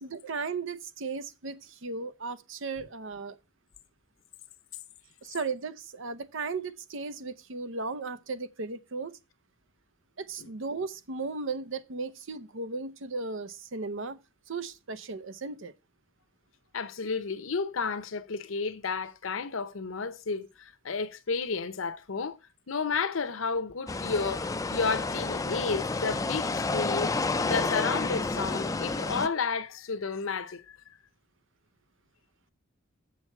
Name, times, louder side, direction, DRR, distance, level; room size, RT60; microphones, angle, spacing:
voice 1, 0.0-3.4 5.2-9.1 10.2-14.2 14.5-15.7, right 4 dB, 65° right, 0.7 m, -36 dB
voice 2, 16.7-22.4 22.7-27.1 27.4-30.8, left 4 dB, 70° left, 0.8 m, -32 dB
sound 1, 23.9-29.3, left 3 dB, 15° left, 0.4 m, -30 dB
7.2 x 6.1 x 4.5 m
head